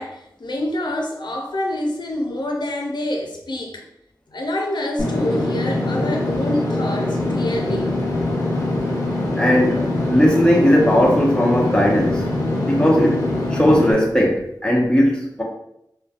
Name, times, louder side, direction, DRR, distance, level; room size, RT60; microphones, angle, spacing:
voice 1, 0.0-3.8 4.3-7.9, left 1 dB, 75° left, 1 dB, 0.5 m, -26 dB
Engine / Mechanisms, 5.0-13.9, left 2 dB, 45° left, 1.0 m, -23 dB
voice 2, 9.4-12.3 12.6-13.2 13.5-15.4, equal, 10° left, -1 dB, 0.7 m, -17 dB
3.0 x 2.2 x 2.4 m, 0.79 s
wide cardioid pair, 60°, 8 cm